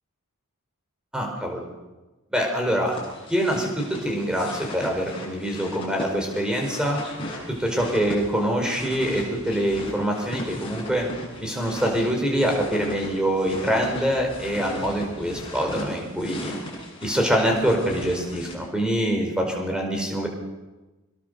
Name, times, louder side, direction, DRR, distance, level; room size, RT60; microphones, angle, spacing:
voice 1, 1.1-1.7 2.3-2.9 3.3-7.0 7.6-11.0 11.4-16.5 17.0-20.3, equal, 5° right, 1 dB, 4.9 m, -25 dB
sound 1, 2.9-18.5, left 1 dB, 25° left, 6.9 m, -38 dB
24.5 x 21.5 x 6.7 m, 1.1 s
head